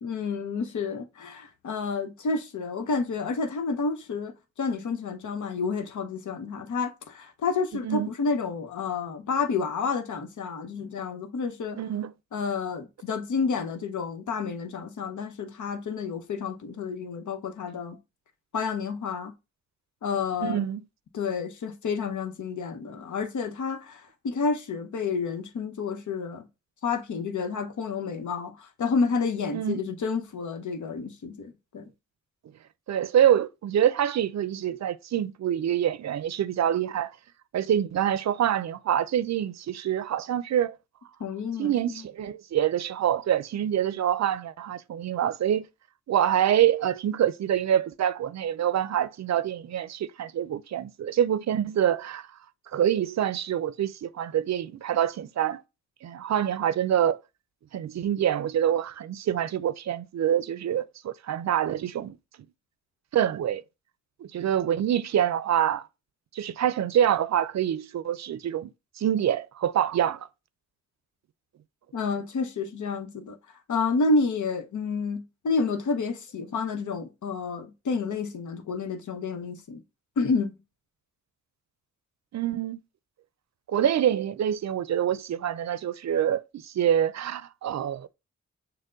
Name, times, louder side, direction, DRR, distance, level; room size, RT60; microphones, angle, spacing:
voice 1, 0.0-11.8 12.3-18.0 18.5-19.3 20.0-20.6 21.1-26.5 26.8-31.8 41.2-42.0 71.9-73.4 73.7-79.8 80.2-80.6, left 4 dB, 75° left, 0.9 m, -30 dB
voice 2, 11.8-12.1 20.4-20.8 29.5-29.8 32.9-37.1 37.5-40.8 41.6-45.7 46.1-52.3 52.7-55.6 56.0-57.2 57.7-62.2 63.1-63.6 64.2-65.9 66.3-68.7 69.0-70.3 82.3-82.8 83.7-88.1, right 10 dB, 65° right, 0.5 m, -26 dB
6.5 x 2.2 x 3.8 m
cardioid pair, 45°, 30 cm